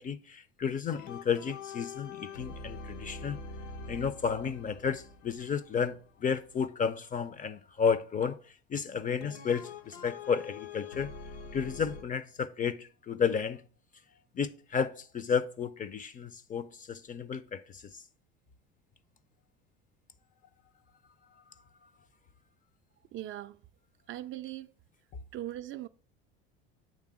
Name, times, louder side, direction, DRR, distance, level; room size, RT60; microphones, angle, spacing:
voice 1, 0.0-3.4 3.9-11.1 11.5-13.6 14.3-18.0, left 6 dB, 25° left, 0.5 m, -32 dB
sound 1, 0.9-6.6 9.2-12.0, left 4 dB, 80° left, 0.8 m, -44 dB
voice 2, 23.1-23.6 24.1-24.7 25.3-25.9, right 13 dB, 45° right, 0.4 m, -39 dB
8.5 x 3.5 x 4.7 m
hypercardioid pair, 80°, 30 cm